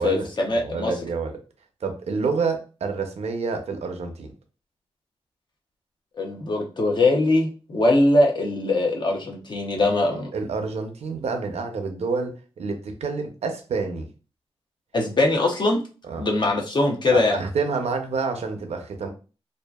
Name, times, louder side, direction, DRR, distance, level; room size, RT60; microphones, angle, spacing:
voice 1, 0.0-0.9 6.2-10.3 14.9-15.8 16.2-17.4, left 2 dB, 45° left, 1 dB, 0.7 m, -21 dB
voice 2, 0.6-1.4 1.8-4.3 9.8-14.1 16.1-16.3 17.1-19.1, right 4 dB, 80° right, 5 dB, 0.5 m, -28 dB
2.7 x 2.4 x 2.3 m, 0.34 s
wide cardioid pair, 90°, 11 cm